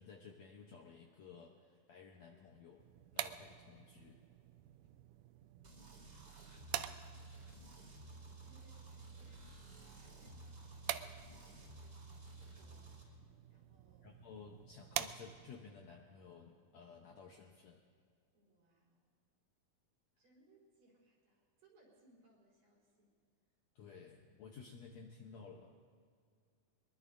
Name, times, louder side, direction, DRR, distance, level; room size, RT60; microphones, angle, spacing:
voice 1, 0.0-2.9 3.1-4.2 14.0-17.8 23.7-26.0, left 5 dB, 70° left, 1 dB, 1.7 m, -55 dB
sound 1, 2.8-15.7, right 13 dB, 90° right, 1.8 m, -48 dB
sound 2, 5.6-13.0, right 2 dB, 30° right, 3.6 m, -54 dB
voice 2, 6.3-7.6 8.4-9.6 10.0-12.0 12.2-14.1 18.3-19.1 20.2-23.1, right 2 dB, 65° right, -4 dB, 5.8 m, -71 dB
23.0 x 22.0 x 2.6 m, 2.1 s
omnidirectional pair, 4.2 m